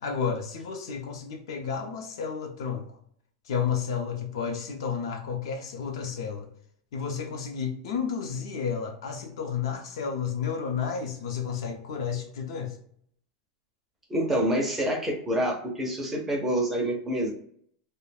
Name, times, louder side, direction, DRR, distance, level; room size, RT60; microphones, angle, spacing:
voice 1, 0.0-2.9 3.5-6.5 6.9-12.7, left 6 dB, 70° left, 4 dB, 0.6 m, -31 dB
voice 2, 14.1-17.3, equal, 10° right, 0 dB, 0.4 m, -27 dB
2.3 x 2.1 x 3.2 m, 0.62 s
supercardioid pair, 170°, 3 cm